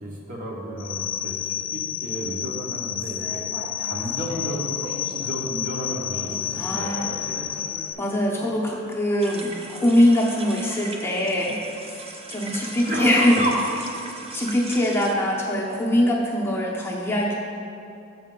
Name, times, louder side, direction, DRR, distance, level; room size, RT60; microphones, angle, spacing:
voice 1, 0.0-3.4 3.8-7.6 12.4-13.5, right 1 dB, 45° right, -3 dB, 1.1 m, -32 dB
sound 1, 0.8-7.9, left 10 dB, 75° left, 0.4 m, -30 dB
sound 2, 3.0-8.5, equal, 70° right, 1.5 m, -42 dB
voice 2, 6.5-7.1 8.0-12.0 12.3-13.4 14.3-17.4, left 1 dB, 10° left, -4 dB, 0.7 m, -22 dB
sound 3, 9.2-15.1, right 3 dB, 30° right, 0.5 m, -39 dB
7.2 x 5.9 x 3.8 m, 2.7 s
head